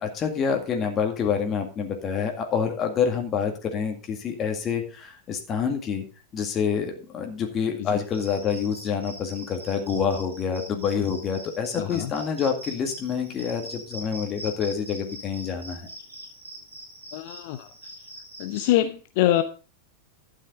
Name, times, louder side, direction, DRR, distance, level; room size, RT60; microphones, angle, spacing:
voice 1, 0.0-6.0 6.3-15.8, left 6 dB, 30° left, 3 dB, 2.0 m, -27 dB
Cricket, 8.1-18.7, right 1 dB, 80° right, 3.9 m, -42 dB
voice 2, 11.8-12.1 17.1-17.7 18.4-19.4, left 13 dB, 50° left, 10 dB, 0.7 m, -24 dB
12.0 x 9.4 x 4.0 m, 0.35 s
figure-of-eight pair, 90°, 0 cm